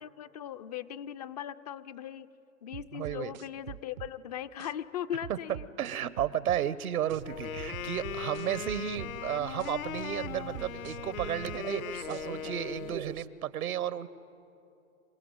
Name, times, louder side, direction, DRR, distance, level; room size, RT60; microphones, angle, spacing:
voice 1, 0.0-2.3 2.6-5.7, left 10 dB, 30° left, 12 dB, 0.4 m, -39 dB
sound 1, 2.7-4.1 4.6-4.7 5.2-6.6 7.1-7.2 7.6-9.1 9.6-9.7 10.2-11.6 12.1-12.2, right 14 dB, 35° right, 0.5 m, -44 dB
voice 2, 2.9-3.3 5.3-5.4 5.8-14.1, right 10 dB, 75° right, 16 dB, 1.1 m, -33 dB
sound 2, 7.1-13.3, right 12 dB, 60° right, 0.8 m, -44 dB
Wind instrument woodwind instrument, 7.2-13.1, left 11 dB, 70° left, 0.9 m, -39 dB
27.5 x 16.5 x 9.1 m, 2.8 s
hypercardioid pair, 135°, 43 cm